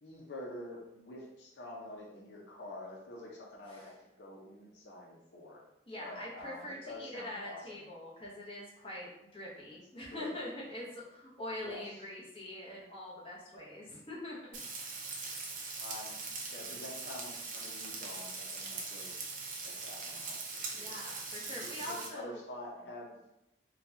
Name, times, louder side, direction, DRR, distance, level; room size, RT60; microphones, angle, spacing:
voice 1, 0.0-5.6 6.0-7.9 10.1-10.3 11.6-12.0 15.8-16.1 16.5-19.1 19.6-20.4 20.7-21.0 21.4-23.2, left 1 dB, 85° left, -2 dB, 0.6 m, -47 dB
voice 2, 5.9-14.3 14.8-15.0 20.7-22.4, left 1 dB, 30° left, -6 dB, 0.9 m, -44 dB
Frying (food), 14.5-22.1, right 4 dB, 50° right, 0.6 m, -41 dB
3.9 x 2.3 x 2.7 m, 0.87 s
head